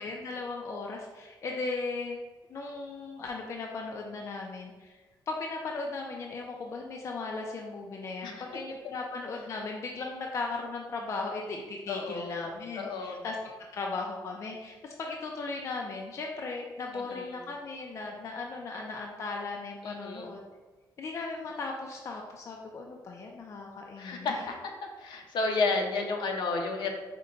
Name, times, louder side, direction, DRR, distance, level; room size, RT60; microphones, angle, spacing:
voice 1, 0.0-2.2 2.5-5.0 5.3-13.4 13.7-20.4 21.0-24.4, left 3 dB, 40° left, 1 dB, 0.4 m, -37 dB
voice 2, 11.9-13.2 16.9-17.4 19.8-20.3 24.0-26.9, left 3 dB, 75° left, 2 dB, 0.7 m, -32 dB
5.0 x 2.2 x 3.8 m, 1.2 s
wide cardioid pair, 165°, 8 cm